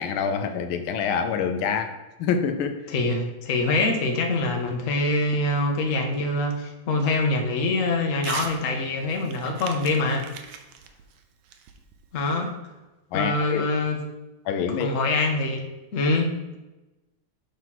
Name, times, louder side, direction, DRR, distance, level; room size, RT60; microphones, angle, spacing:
voice 1, 0.0-2.8 13.1-13.7 14.4-14.9, left 6 dB, 80° left, 8 dB, 1.4 m, -26 dB
voice 2, 2.9-10.3 12.1-12.5 13.1-14.0 14.8-15.6 15.9-16.3, left 2 dB, 50° left, 3 dB, 1.0 m, -24 dB
Crumpling crinkling / Tearing, 8.2-8.6 8.9-12.2, right 7 dB, 80° right, 1.5 m, -39 dB
6.9 x 3.2 x 5.7 m, 1.1 s
omnidirectional pair, 2.3 m